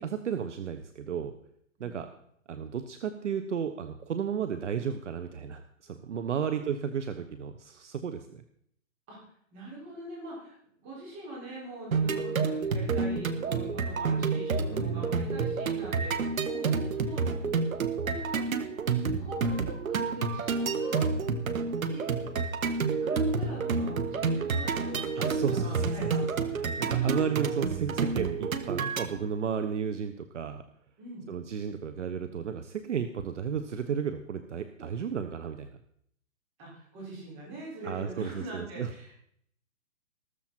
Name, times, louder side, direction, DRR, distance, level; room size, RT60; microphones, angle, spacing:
voice 1, 0.0-1.4 1.8-2.1 2.5-8.4 14.7-15.1 25.2-25.9 26.6-30.6 31.3-35.7 37.8-38.9, right 7 dB, 60° right, 9 dB, 1.2 m, -33 dB
voice 2, 6.4-6.8 9.1-9.2 9.5-17.4 18.0-18.3 18.8-21.0 21.9-22.0 23.0-26.4 26.8-27.5 29.5-29.7 31.0-31.3 36.6-39.1, right 1 dB, 20° right, -5 dB, 6.0 m, -43 dB
sound 1, 11.9-29.1, right 4 dB, 80° right, 1.7 m, -29 dB
14.5 x 14.0 x 4.5 m, 0.67 s
hypercardioid pair, 170°, 41 cm